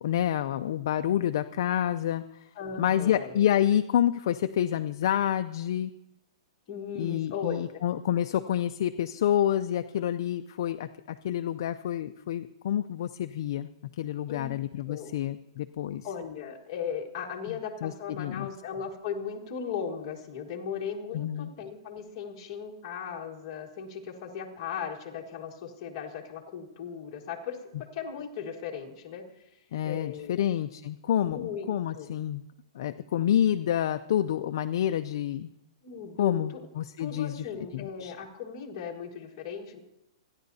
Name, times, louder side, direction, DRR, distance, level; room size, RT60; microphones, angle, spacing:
voice 1, 0.0-2.5 2.8-5.9 7.0-16.1 17.5-18.5 21.1-21.5 29.7-32.4 32.7-35.5 36.2-38.1, left 11 dB, 40° left, 9 dB, 0.4 m, -28 dB
voice 2, 2.6-3.4 6.7-7.7 14.3-14.5 14.9-15.1 16.0-27.6 27.9-29.5 29.8-30.4 31.2-32.1 35.8-36.6 37.0-39.8, left 7 dB, 25° left, -1 dB, 1.5 m, -37 dB
27.5 x 10.5 x 2.7 m, 0.90 s
hypercardioid pair, 180°, 3 cm